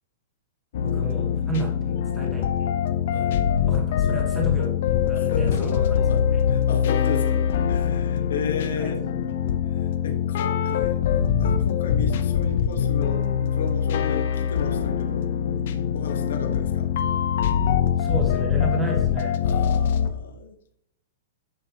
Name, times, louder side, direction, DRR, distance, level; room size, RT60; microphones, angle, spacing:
sound 1, 0.7-20.1, left 8 dB, 45° left, 0.7 m, -23 dB
voice 1, 0.8-1.7 2.1-2.7 3.7-5.9 8.8-8.9 17.6-19.4, right 3 dB, 5° right, -2 dB, 1.3 m, -32 dB
voice 2, 5.1-5.7 6.1-9.0 9.6-11.0 11.4-13.2 13.5-16.9 19.4-20.6, left 5 dB, 70° left, 4 dB, 1.4 m, -34 dB
9.0 x 7.5 x 2.9 m, 0.69 s
hypercardioid pair, 180°, 0 cm